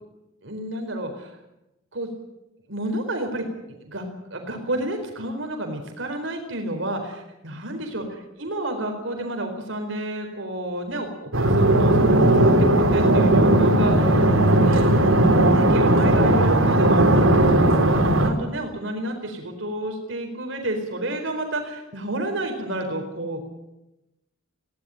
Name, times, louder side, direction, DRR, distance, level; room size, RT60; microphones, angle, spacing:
voice 1, 0.4-1.4 1.9-2.1 2.7-11.1 11.3-23.5, right 1 dB, 65° right, 4 dB, 4.3 m, -30 dB
sound 1, 11.3-18.3, right 1 dB, 80° right, 3.9 m, -17 dB
21.0 x 17.5 x 8.9 m, 0.92 s
head